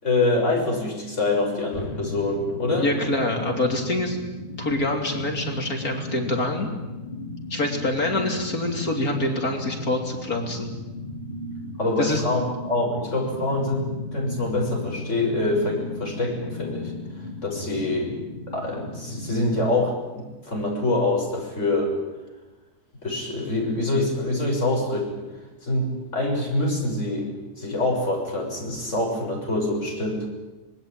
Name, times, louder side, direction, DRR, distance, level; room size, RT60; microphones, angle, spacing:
voice 1, 0.0-2.9 11.8-16.9 17.4-18.1 18.5-22.0 23.0-25.2 25.6-30.3, left 2 dB, 45° left, -1 dB, 7.0 m, -25 dB
sound 1, 1.7-19.9, left 2 dB, 30° left, 4.0 m, -36 dB
voice 2, 2.8-4.2 4.6-6.7 7.5-10.7 12.0-12.2, left 2 dB, 60° left, 3 dB, 3.6 m, -25 dB
25.5 x 21.0 x 8.9 m, 1.1 s
omnidirectional pair, 1.7 m